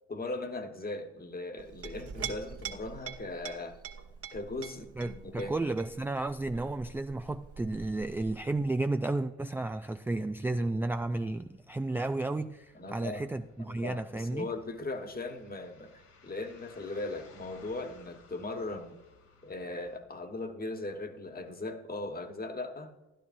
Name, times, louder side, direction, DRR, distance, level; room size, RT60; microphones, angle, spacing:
voice 1, 0.1-3.8 4.3-5.6 12.7-13.3 13.6-19.0 19.4-22.9, left 2 dB, 30° left, 6 dB, 1.4 m, -39 dB
Chink clink, 1.6-8.7, right 7 dB, 50° right, 1.3 m, -44 dB
sound 1, 4.0-4.7 5.0-5.2 5.5-20.0, left 3 dB, 65° left, 2.7 m, -61 dB
voice 2, 5.0-14.5, right 2 dB, 5° right, 8 dB, 0.3 m, -32 dB
12.5 x 12.0 x 2.7 m, 1.0 s
hypercardioid pair, 60°, 31 cm